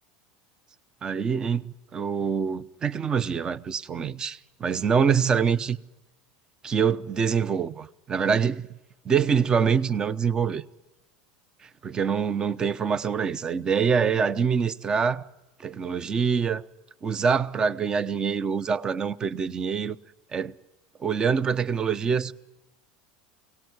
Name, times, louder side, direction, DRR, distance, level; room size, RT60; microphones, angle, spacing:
voice 1, 1.0-5.8 6.6-8.7 9.0-10.6 11.8-15.3 15.6-16.6 17.0-20.0 20.3-20.5 21.0-22.3, right 6 dB, 25° right, 0.8 m, -25 dB
23.5 x 18.5 x 9.7 m
supercardioid pair, 115°, 3 cm